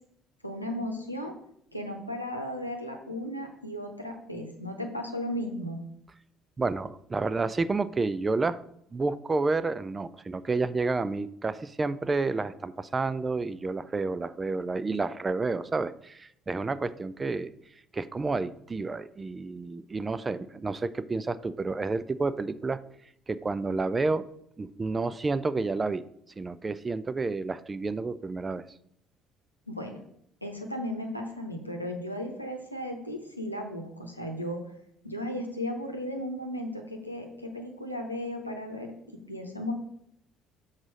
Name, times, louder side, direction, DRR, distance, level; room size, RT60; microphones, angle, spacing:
voice 1, 0.4-1.3 1.7-5.8 29.7-30.0 30.4-34.6 35.0-39.7, left 1 dB, 90° left, 2 dB, 0.8 m, -35 dB
voice 2, 6.6-8.6 8.9-17.5 17.9-22.8 23.3-24.2 24.6-26.0 26.4-28.6, right 3 dB, 25° right, 15 dB, 0.4 m, -30 dB
6.1 x 4.0 x 6.1 m, 0.71 s
figure-of-eight pair, 50°, 0 cm